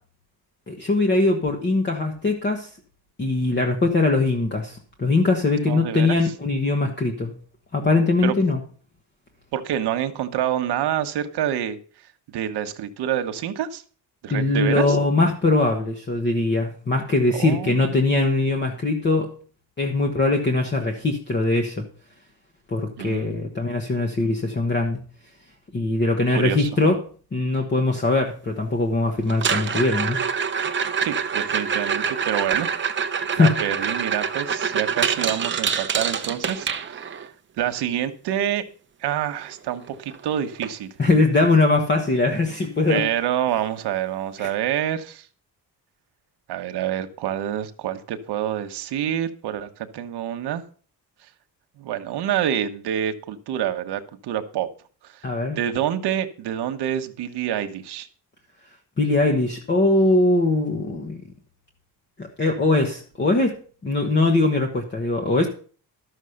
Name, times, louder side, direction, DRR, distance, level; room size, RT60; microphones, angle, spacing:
voice 1, 0.7-2.7 3.2-7.3 7.7-8.6 14.3-19.3 19.8-21.8 22.7-25.0 25.7-27.0 27.3-30.2 33.3-33.6 41.0-43.1 44.4-44.5 55.2-55.6 59.0-61.2 62.2-63.6 63.8-65.5, left 2 dB, 25° left, 2 dB, 1.3 m, -21 dB
voice 2, 5.7-6.2 8.2-8.3 9.5-11.8 12.3-13.8 14.2-15.0 17.3-18.1 23.0-23.4 26.3-26.7 31.0-32.7 33.4-37.3 37.6-38.6 39.0-40.9 42.9-45.3 46.5-50.6 51.8-54.7 55.5-58.1, right 10 dB, 85° right, 8 dB, 1.3 m, -27 dB
sound 1, 29.3-37.3 39.5-39.6 39.9-40.2 40.6-40.7 41.3-41.4 43.3-43.4, right 6 dB, 30° right, 0.7 m, -26 dB
12.5 x 6.5 x 6.5 m, 0.41 s
cardioid pair, 155°, 39 cm